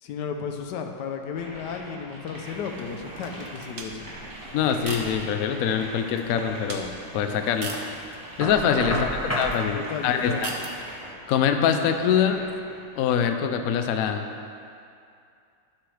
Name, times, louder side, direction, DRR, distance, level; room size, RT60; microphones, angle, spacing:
voice 1, 0.0-4.1 8.9-9.0 9.7-10.5, left 6 dB, 70° left, 5 dB, 1.2 m, -34 dB
sound 1, 1.3-13.4, right 1 dB, 15° right, 0.9 m, -43 dB
sound 2, 2.4-11.1, right 3 dB, 75° right, 0.5 m, -41 dB
voice 2, 4.5-7.7 8.4-10.5 11.3-12.4 13.0-14.2, left 8 dB, 90° left, 7 dB, 0.7 m, -24 dB
Knock, 8.4-9.6, equal, 15° left, 0.5 m, -29 dB
11.0 x 6.1 x 3.2 m, 2.5 s
omnidirectional pair, 2.1 m